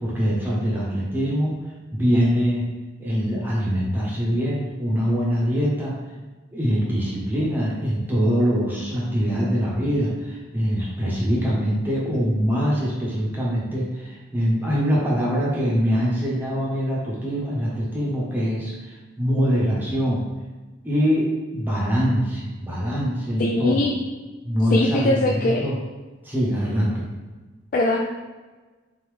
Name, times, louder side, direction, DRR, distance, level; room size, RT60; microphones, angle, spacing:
voice 1, 0.0-1.5 1.9-2.6 3.0-5.9 6.5-20.2 20.8-21.3 21.5-23.9 24.4-25.8 26.2-27.1, equal, 10° right, -6 dB, 0.9 m, -23 dB
voice 2, 23.4-23.9 24.7-25.7 27.7-28.1, left 2 dB, 45° left, 0 dB, 0.3 m, -21 dB
4.0 x 3.6 x 3.2 m, 1.3 s
head